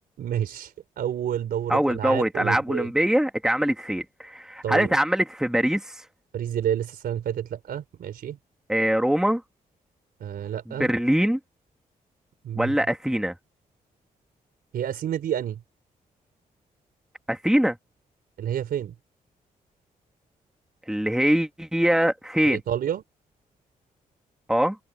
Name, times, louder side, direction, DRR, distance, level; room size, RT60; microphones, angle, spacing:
voice 1, 0.2-2.9 4.6-5.0 6.3-8.4 10.2-10.9 12.4-12.8 14.7-15.6 18.4-18.9 22.4-23.0, right 10 dB, 80° right, 3.9 m, -29 dB
voice 2, 1.7-6.0 8.7-9.4 10.7-11.4 12.5-13.3 17.3-17.8 20.9-22.6 24.5-24.8, equal, 5° right, 2.6 m, -23 dB
cardioid pair, 60°, 16 cm